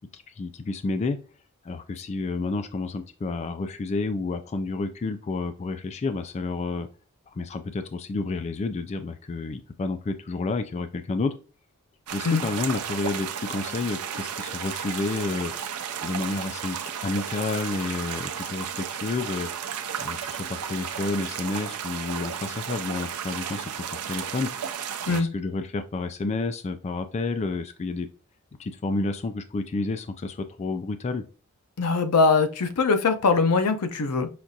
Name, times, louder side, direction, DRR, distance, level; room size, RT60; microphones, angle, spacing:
voice 1, 0.1-1.2 1.6-6.9 7.3-11.4 12.1-16.8 17.0-19.5 20.0-24.5 25.0-28.1 28.6-31.2, left 3 dB, 30° left, 9 dB, 0.3 m, -30 dB
sound 1, 12.1-25.2, right 8 dB, 80° right, 0.5 m, -33 dB
voice 2, 31.8-34.3, left 4 dB, 90° left, 8 dB, 0.6 m, -22 dB
5.9 x 2.4 x 2.6 m, 0.34 s
head